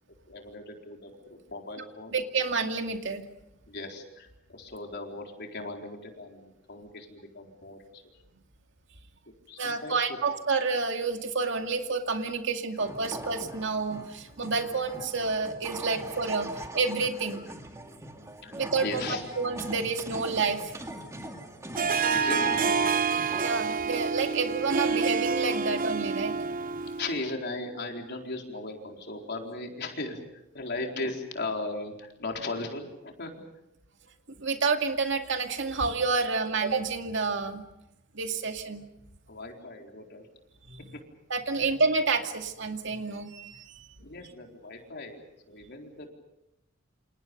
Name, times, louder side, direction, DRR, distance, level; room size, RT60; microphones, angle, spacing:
voice 1, 0.3-2.2 3.7-8.0 9.5-10.2 11.4-11.7 15.9-16.0 17.1-17.6 18.4-19.2 20.2-20.3 20.8-20.9 22.1-22.4 24.2-24.4 27.0-33.3 39.3-40.3 41.6-41.7 44.0-46.1, left 2 dB, 55° left, 2 dB, 4.3 m, -38 dB
voice 2, 2.1-3.2 9.6-17.4 18.5-20.7 22.1-22.2 23.4-26.4 34.3-37.6 38.1-38.8 40.7-40.9 41.3-43.9, right 4 dB, 65° right, 5 dB, 2.3 m, -29 dB
sound 1, 12.8-23.6, right 1 dB, 15° right, 2.3 m, -41 dB
Harp, 21.8-27.2, right 5 dB, 45° right, 1.0 m, -28 dB
28.0 x 28.0 x 5.4 m, 0.87 s
head